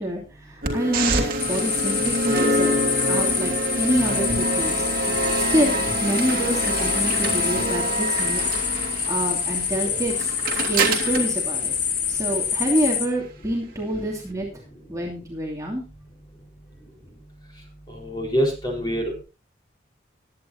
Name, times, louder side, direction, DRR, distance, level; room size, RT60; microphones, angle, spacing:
voice 1, 0.0-2.7 3.1-3.5 3.8-4.8 5.1-8.4 8.7-10.3 10.6-11.7 12.1-14.5 14.9-15.8, right 1 dB, 15° right, -3 dB, 2.8 m, -27 dB
sound 1, 0.6-12.6, right 1 dB, 50° right, 2.8 m, -26 dB
sound 2, 1.4-13.1, left 7 dB, 85° left, 2.0 m, -26 dB
voice 2, 17.9-19.2, equal, 25° left, 0 dB, 4.6 m, -26 dB
21.0 x 9.6 x 2.8 m, 0.31 s
head